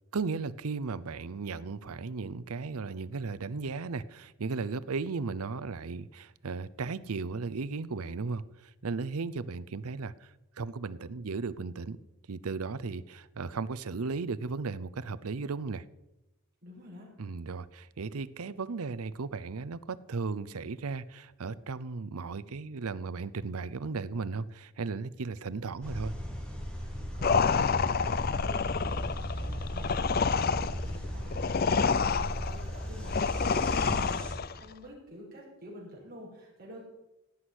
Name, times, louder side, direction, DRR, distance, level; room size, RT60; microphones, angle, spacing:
voice 1, 0.1-10.3 10.6-12.0 12.3-15.8 17.2-26.1 33.9-34.1, right 4 dB, 80° right, 17 dB, 0.6 m, -36 dB
voice 2, 16.6-17.1 26.9-28.1 28.4-36.8, equal, 40° right, -4 dB, 5.7 m, -49 dB
sound 1, 25.8-34.3, equal, 5° left, 2.4 m, -36 dB
sound 2, 27.2-34.6, left 5 dB, 40° left, 0.4 m, -28 dB
17.0 x 6.3 x 9.7 m, 0.95 s
head